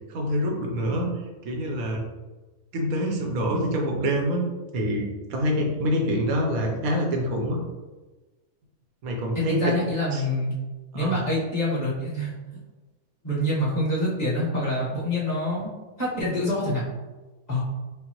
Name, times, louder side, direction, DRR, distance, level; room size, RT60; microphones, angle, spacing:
voice 1, 0.1-1.1 1.4-2.0 2.7-4.4 4.7-7.6 9.0-9.7 10.1-10.2 10.9-11.2, equal, 80° right, 1 dB, 1.2 m, -26 dB
voice 2, 9.3-10.5 10.9-12.6 13.2-15.7 16.0-16.8 17.5-17.6, left 1 dB, 30° left, -8 dB, 1.4 m, -26 dB
5.3 x 2.1 x 3.0 m, 1.2 s
omnidirectional pair, 1.5 m